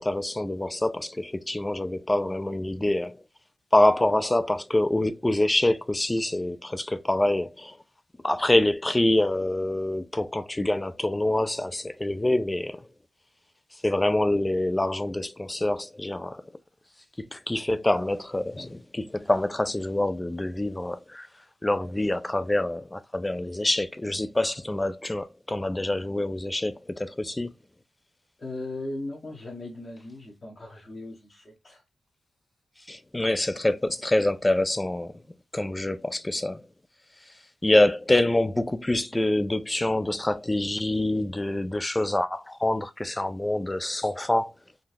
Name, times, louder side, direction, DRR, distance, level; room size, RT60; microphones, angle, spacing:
voice 1, 0.0-3.2 3.7-7.8 8.2-12.8 13.8-16.4 17.2-21.3 21.6-27.5 32.9-35.2 35.5-36.6 37.6-44.5, left 1 dB, 10° left, 0.3 m, -26 dB
voice 2, 28.4-31.8, left 2 dB, 30° left, 0.9 m, -38 dB
3.7 x 2.4 x 2.6 m
wide cardioid pair, 150°, 0 cm